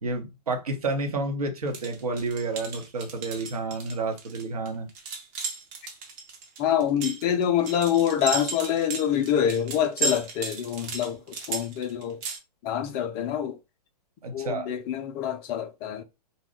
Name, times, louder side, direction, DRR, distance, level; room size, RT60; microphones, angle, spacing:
voice 1, 0.0-4.9 14.2-14.7, right 3 dB, 65° right, 0.9 m, -30 dB
sound 1, 1.7-12.4, right 4 dB, 30° right, 0.7 m, -34 dB
voice 2, 6.6-12.2 12.6-13.6 14.3-16.0, left 9 dB, 20° left, 0.4 m, -26 dB
2.7 x 2.3 x 3.5 m
figure-of-eight pair, 115°, 21 cm